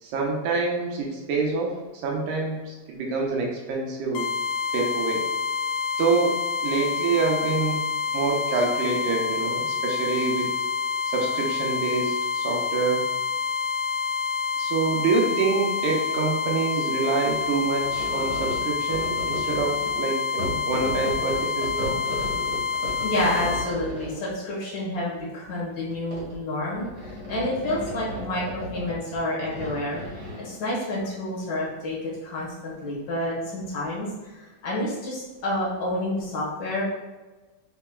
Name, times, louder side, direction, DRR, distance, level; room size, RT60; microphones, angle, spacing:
voice 1, 0.0-1.7 2.0-4.3 4.7-5.3 6.0-6.4 6.6-7.8 8.1-10.5 11.1-13.0 14.6-22.0, right 4 dB, 80° right, -1 dB, 2.3 m, -26 dB
sound 1, 4.1-23.7, left 5 dB, 80° left, 2.1 m, -28 dB
sound 2, 17.2-20.0 20.4-24.3 25.2-25.6 25.9-26.4 26.7-30.5, equal, 50° right, 1.2 m, -35 dB
voice 2, 23.0-36.8, left 1 dB, 60° left, -6 dB, 1.0 m, -29 dB
5.6 x 3.9 x 2.2 m, 1.2 s
omnidirectional pair, 3.8 m